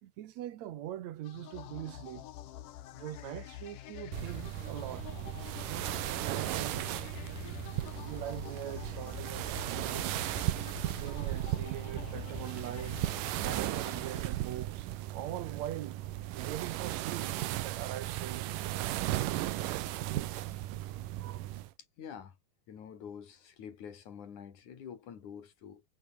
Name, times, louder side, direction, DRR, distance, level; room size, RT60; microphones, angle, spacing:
voice 1, 0.0-2.3 2.9-5.1 5.6-7.1 7.8-10.2 10.9-13.0 13.4-16.0 16.4-18.6 21.2-21.5, right 12 dB, 65° right, 2.2 m, -43 dB
sound 1, 1.2-14.9, left 12 dB, 90° left, 2.9 m, -47 dB
sound 2, 4.1-21.7, right 15 dB, 90° right, 2.6 m, -36 dB
voice 2, 22.0-22.4 22.7-25.8, left 8 dB, 70° left, 4.1 m, -47 dB
omnidirectional pair, 3.7 m